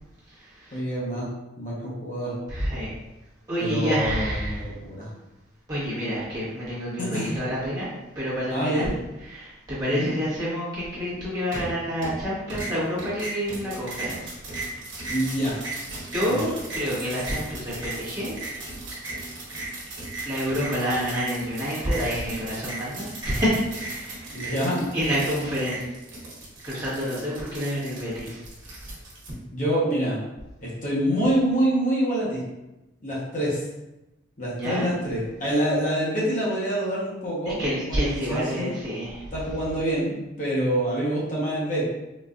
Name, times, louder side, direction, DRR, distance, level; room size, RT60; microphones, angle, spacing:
voice 1, 0.7-1.3 1.6-2.3 3.6-5.1 7.0-7.4 8.5-8.9 9.9-10.1 15.1-15.6 16.2-16.5 24.3-24.9 29.5-30.2 30.6-32.4 33.0-33.7 34.4-37.6 37.9-38.7 39.3-41.8, right 1 dB, 40° left, -7 dB, 0.9 m, -26 dB
voice 2, 2.5-2.9 3.5-4.7 5.7-8.8 9.3-14.3 16.1-18.3 20.2-24.3 24.9-25.8 26.6-28.4 28.7-28.8 34.6-34.9 37.6-39.2, equal, 20° right, -10 dB, 1.1 m, -28 dB
sound 1, 11.5-12.2 12.5-29.3, right 2 dB, 70° right, 1.1 m, -36 dB
4.0 x 2.4 x 2.4 m, 0.98 s
head